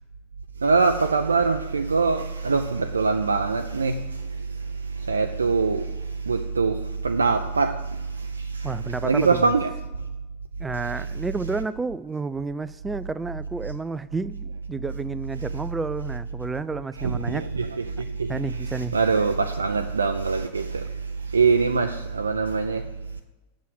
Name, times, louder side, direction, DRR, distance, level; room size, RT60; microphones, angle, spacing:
voice 1, 0.6-9.7 10.7-11.3 15.4-15.6 17.0-22.9, right 4 dB, 75° right, 0.4 m, -24 dB
voice 2, 8.6-9.5 10.6-17.5 18.3-19.0, right 4 dB, 10° right, 0.3 m, -31 dB
8.2 x 6.2 x 7.8 m
figure-of-eight pair, 90°, 0 cm